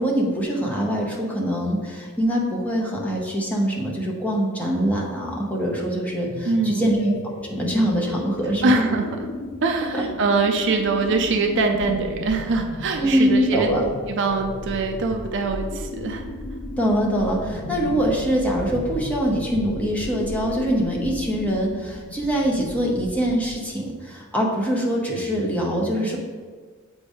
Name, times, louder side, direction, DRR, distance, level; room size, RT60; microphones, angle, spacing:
voice 1, 0.0-7.1 7.5-8.8 9.9-10.0 13.0-13.9 16.8-26.2, equal, 5° left, -2 dB, 0.8 m, -23 dB
sound 1, 6.2-23.7, left 2 dB, 65° left, 0.5 m, -35 dB
voice 2, 6.4-7.0 8.6-9.1 9.6-13.7 14.1-16.2, right 3 dB, 55° right, 4 dB, 0.5 m, -23 dB
7.6 x 2.7 x 4.8 m, 1.5 s
head